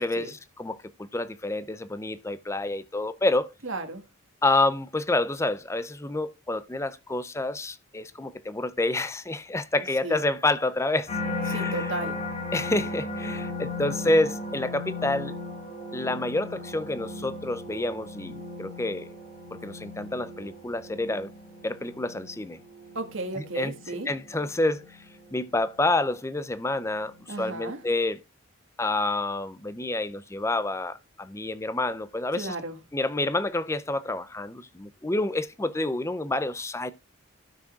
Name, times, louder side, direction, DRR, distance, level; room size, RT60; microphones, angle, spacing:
voice 1, 0.0-3.5 4.4-11.1 11.4-11.9 12.5-15.3 15.9-19.1 19.6-21.3 21.6-22.6 23.6-23.7 24.1-24.8 25.3-28.2 28.8-32.5 32.9-36.9, left 2 dB, 15° left, 0.5 m, -28 dB
voice 2, 3.6-4.0 10.0-10.2 11.3-12.2 23.0-24.1 27.3-27.8 32.4-32.8, right 2 dB, 70° right, 1.8 m, -34 dB
sound 1, 11.1-26.3 26.8-27.2, left 3 dB, 35° left, 5.1 m, -37 dB
16.5 x 6.0 x 2.4 m
head